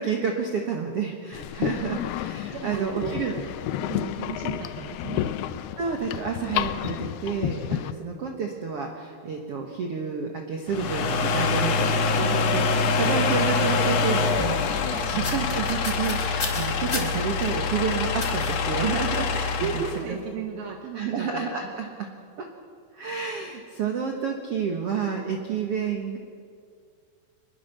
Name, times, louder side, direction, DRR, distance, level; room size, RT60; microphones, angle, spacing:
voice 1, 0.0-3.3 5.8-19.8 20.1-20.2 21.0-21.9 22.4-22.5 22.9-26.2, right 6 dB, 50° right, 2 dB, 1.9 m, -30 dB
sound 1, 1.3-7.9, left 12 dB, 85° left, 2.8 m, -31 dB
voice 2, 1.6-3.5 3.8-5.4 14.9-15.3 19.6-21.8, right 7 dB, 75° right, 2 dB, 3.3 m, -36 dB
sound 2, 10.7-20.0, left 4 dB, 60° left, 1.9 m, -25 dB
sound 3, 15.0-17.5 18.2-18.6 19.1-19.4 19.7-20.0, left 2 dB, 20° left, 3.0 m, -35 dB
25.0 x 21.0 x 6.8 m, 2.2 s
omnidirectional pair, 4.4 m